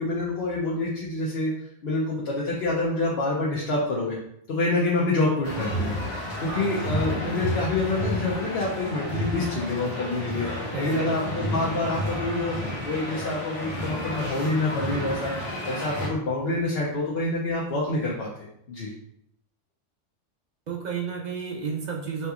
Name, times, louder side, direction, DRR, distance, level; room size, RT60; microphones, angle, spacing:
voice 1, 0.0-1.5 1.8-4.2 4.5-18.9, left 2 dB, 60° left, -5 dB, 0.9 m, -27 dB
sound 1, 5.4-16.1, left 1 dB, 80° left, 1.4 m, -31 dB
voice 2, 6.5-7.0 7.4-7.6 10.7-11.4 20.7-22.3, right 5 dB, 55° right, -1 dB, 0.5 m, -33 dB
4.2 x 2.9 x 2.4 m, 0.72 s
omnidirectional pair, 1.2 m